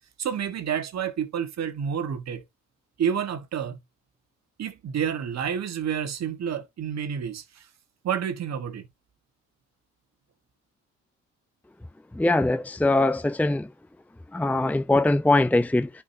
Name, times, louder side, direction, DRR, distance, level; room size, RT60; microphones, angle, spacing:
voice 1, 0.2-2.4 3.0-3.8 4.6-7.7 8.0-8.9, right 8 dB, 60° right, 1.6 m, -29 dB
voice 2, 12.2-13.7 14.3-15.9, left 2 dB, 5° left, 0.7 m, -22 dB
10.5 x 5.1 x 2.8 m
cardioid pair, 90°, 30 cm